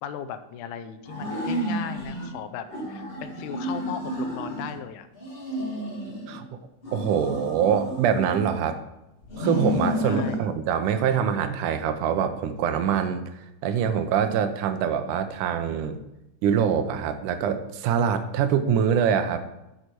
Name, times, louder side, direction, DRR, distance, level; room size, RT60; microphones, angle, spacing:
voice 1, 0.0-5.1 10.0-10.5, left 8 dB, 85° left, 10 dB, 2.1 m, -37 dB
sound 1, 1.0-2.3 2.7-4.8 5.1-6.4 6.8-8.7 9.2-10.4, equal, 25° left, 1.5 m, -31 dB
voice 2, 6.3-6.6 6.9-8.8 9.4-13.2 13.6-16.0 16.4-19.5, right 8 dB, 85° right, 9 dB, 2.3 m, -24 dB
8.3 x 6.7 x 4.6 m, 0.90 s
omnidirectional pair, 3.6 m